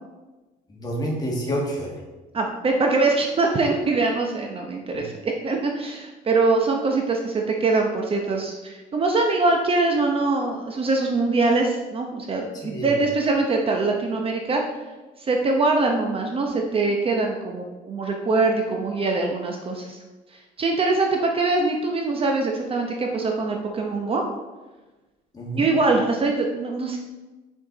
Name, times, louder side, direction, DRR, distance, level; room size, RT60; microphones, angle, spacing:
voice 1, 0.7-2.0 4.9-5.0 12.5-12.9 25.3-25.7, equal, 25° left, -2 dB, 1.8 m, -28 dB
voice 2, 2.3-14.6 15.2-20.0 20.6-24.2 25.6-27.0, right 3 dB, 35° right, 2 dB, 0.8 m, -23 dB
6.3 x 4.6 x 3.9 m, 1.2 s
cardioid pair, 110°, 17 cm